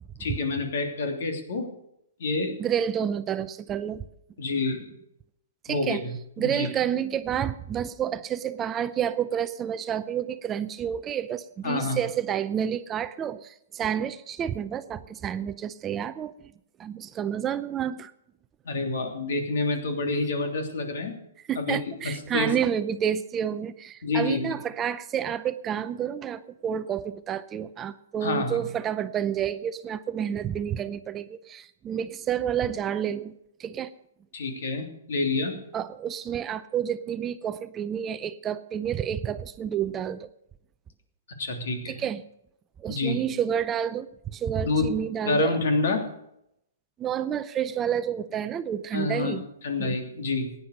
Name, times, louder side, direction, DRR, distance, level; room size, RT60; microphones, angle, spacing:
voice 1, 0.2-1.7 2.2-2.6 4.4-5.0 5.7-6.7 11.6-12.0 18.6-21.1 21.5-21.8 22.0-22.6 24.0-24.5 28.2-28.6 34.3-35.6 41.4-42.0 42.9-43.2 44.6-45.0 45.2-46.1 48.9-50.5, left 3 dB, 70° left, 5 dB, 3.1 m, -28 dB
voice 2, 2.6-4.1 5.6-6.0 6.4-16.5 16.8-18.1 21.5-33.3 33.6-33.9 35.7-40.3 41.9-42.2 42.8-45.6 47.0-49.4 49.8-50.0, right 9 dB, 20° right, 13 dB, 0.5 m, -29 dB
16.5 x 9.7 x 6.6 m, 0.77 s
hypercardioid pair, 145°, 0 cm